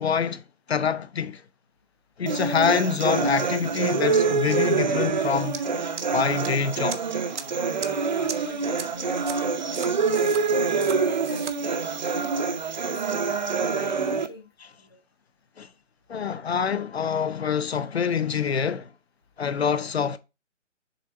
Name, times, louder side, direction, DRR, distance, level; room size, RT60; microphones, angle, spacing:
voice 1, 0.0-1.4 2.2-5.6 6.1-7.1 15.6-15.7 16.1-18.9 19.4-20.2, left 6 dB, 60° left, 0.7 m, -26 dB
sound 1, 2.3-14.3, right 5 dB, 40° right, 0.6 m, -26 dB
sound 2, 5.5-5.6 6.0-6.5 6.9-7.0 7.4-7.5 7.8-7.9 8.3-8.4 8.8-8.9 9.3-9.4 9.7-10.4 10.8-11.0 11.2-11.5, right 6 dB, 70° right, 1.0 m, -35 dB
voice 2, 8.1-9.8 10.1-12.8 13.3-13.5 13.8-15.0, left 2 dB, 20° left, 0.5 m, -45 dB
6.9 x 3.8 x 4.3 m
hypercardioid pair, 165°, 37 cm